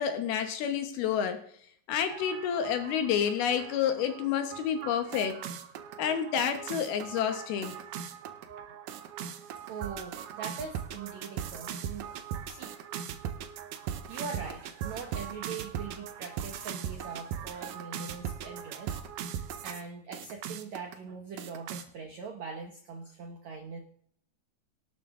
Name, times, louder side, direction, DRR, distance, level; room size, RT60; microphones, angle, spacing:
voice 1, 0.0-1.4 1.9-5.4 6.0-7.8, left 8 dB, 70° left, 7 dB, 2.7 m, -29 dB
sound 1, 2.1-19.8 20.1-20.9 21.4-21.8, right 9 dB, 90° right, 1.8 m, -39 dB
voice 2, 9.7-12.0 12.5-12.7 14.1-19.0 19.6-23.8, right 5 dB, 75° right, 3 dB, 1.7 m, -42 dB
18.0 x 9.2 x 3.7 m, 0.62 s
omnidirectional pair, 4.9 m